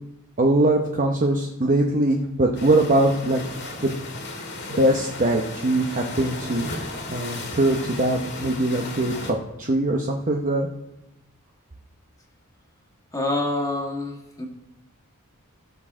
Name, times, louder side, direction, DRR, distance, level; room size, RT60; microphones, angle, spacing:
voice 1, 0.4-3.4 3.8-3.9 4.7-6.7 7.1-10.7, right 1 dB, 35° right, 1 dB, 0.9 m, -22 dB
sound 1, 2.5-9.3, left 2 dB, 50° left, 2.0 m, -35 dB
voice 2, 13.1-14.5, left 2 dB, 15° left, 1 dB, 1.7 m, -26 dB
17.5 x 6.4 x 3.7 m, 0.91 s
head